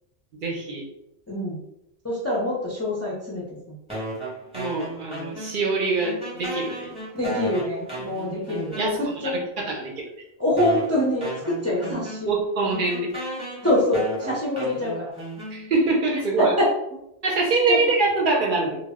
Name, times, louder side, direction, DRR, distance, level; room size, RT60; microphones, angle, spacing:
voice 1, 0.4-0.9 4.5-6.9 8.8-9.9 12.3-13.1 15.5-16.5 17.2-18.8, right 3 dB, 60° right, -1 dB, 0.7 m, -24 dB
voice 2, 1.3-1.6 2.0-3.8 7.1-9.4 10.4-12.3 13.6-15.1 16.4-16.7 17.7-17.8, left 1 dB, 20° left, -6 dB, 0.4 m, -25 dB
sound 1, 3.9-5.7 6.0-9.3 10.0-10.1 10.6-16.0, right 1 dB, 5° right, 0.8 m, -35 dB
2.1 x 2.0 x 3.4 m, 0.82 s
omnidirectional pair, 1.0 m